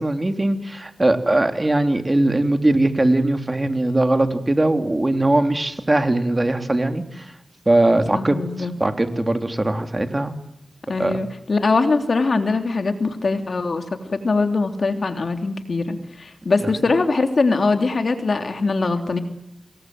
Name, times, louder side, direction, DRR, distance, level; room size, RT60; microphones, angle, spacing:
voice 1, 0.0-7.3 7.6-10.4 11.0-11.2, right 2 dB, 25° right, 7 dB, 3.2 m, -20 dB
voice 2, 7.9-8.7 10.9-19.2, left 3 dB, 65° left, 6 dB, 3.1 m, -22 dB
27.5 x 21.0 x 7.9 m, 0.81 s
wide cardioid pair, 70°, 0 cm